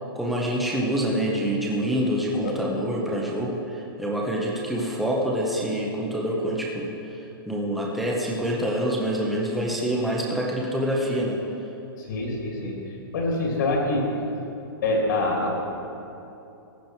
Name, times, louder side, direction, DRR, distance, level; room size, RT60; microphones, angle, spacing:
voice 1, 0.1-11.4, equal, ahead, -3 dB, 0.8 m, -26 dB
voice 2, 12.0-12.7 13.1-14.1 14.8-15.6, left 2 dB, 55° left, -1 dB, 2.7 m, -25 dB
15.0 x 9.5 x 4.5 m, 2.9 s
hypercardioid pair, 170°, 13 cm